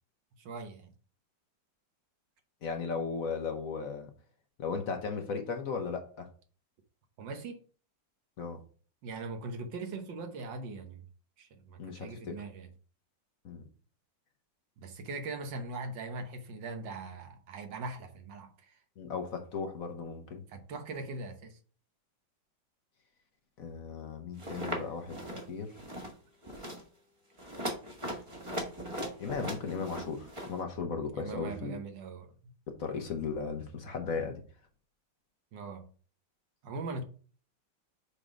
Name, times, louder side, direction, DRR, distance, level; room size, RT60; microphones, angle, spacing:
voice 1, 0.4-0.9 7.2-7.6 9.0-11.0 11.4-12.7 14.8-18.7 20.5-21.6 24.7-24.9 31.1-32.5 35.5-35.9 36.6-37.0, right 3 dB, 80° right, 1.7 m, -41 dB
voice 2, 2.6-4.1 4.6-6.3 8.4-8.6 11.8-12.4 13.4-13.6 19.0-20.4 23.6-25.7 29.2-31.8 32.7-34.4, left 5 dB, 55° left, 1.2 m, -36 dB
sound 1, 24.4-24.8 25.1-25.4 25.7-26.1 26.4-26.8 27.4-30.5, equal, 20° right, 1.2 m, -38 dB
6.7 x 3.8 x 5.0 m
omnidirectional pair, 2.0 m